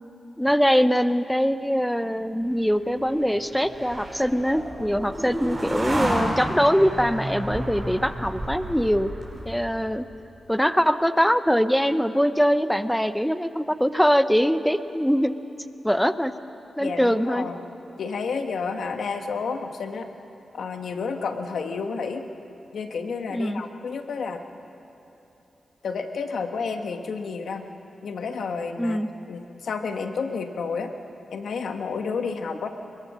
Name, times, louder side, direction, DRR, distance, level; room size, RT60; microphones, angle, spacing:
voice 1, 0.4-9.1 9.5-10.0 10.5-15.3 15.8-16.3 16.8-17.5 23.3-23.6 28.8-29.1, equal, ahead, 11 dB, 0.7 m, -22 dB
sound 1, 2.5-9.9, right 1 dB, 25° right, 6.0 m, -31 dB
voice 2, 16.8-17.6 18.0-20.1 20.5-22.3 22.7-24.4 25.8-27.7 28.0-29.0 29.3-30.9 31.3-32.7, left 5 dB, 80° left, 6 dB, 1.4 m, -30 dB
26.0 x 20.5 x 6.2 m, 3.0 s
cardioid pair, 65°, 0 cm